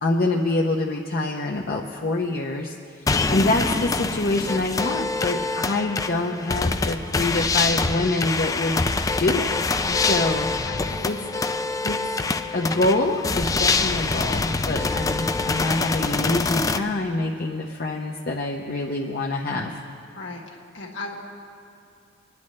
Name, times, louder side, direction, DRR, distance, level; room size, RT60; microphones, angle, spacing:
voice 1, 0.0-8.8 9.2-9.6 10.0-10.5 11.0-11.2 11.8-12.0 12.5-19.8, left 2 dB, 50° left, 0 dB, 0.7 m, -25 dB
sound 1, 3.1-16.8, left 3 dB, 20° left, 0.3 m, -25 dB
voice 2, 10.6-11.2 20.1-20.4 20.7-21.2, left 3 dB, 80° left, -1 dB, 1.6 m, -36 dB
23.0 x 10.5 x 3.2 m, 2.5 s
head